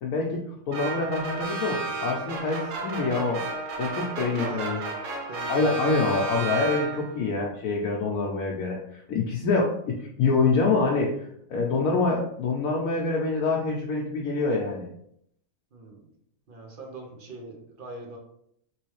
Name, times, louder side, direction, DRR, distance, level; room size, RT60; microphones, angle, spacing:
voice 1, 0.0-3.4 3.8-4.8 5.5-14.9, left 3 dB, 75° left, -2 dB, 1.0 m, -26 dB
sound 1, 0.7-7.3, right 3 dB, 70° right, 1.0 m, -33 dB
voice 2, 4.3-4.9 5.3-5.8 15.7-16.1 16.5-18.2, right 2 dB, 50° right, 1 dB, 0.7 m, -41 dB
3.1 x 3.0 x 3.1 m, 0.72 s
omnidirectional pair, 1.5 m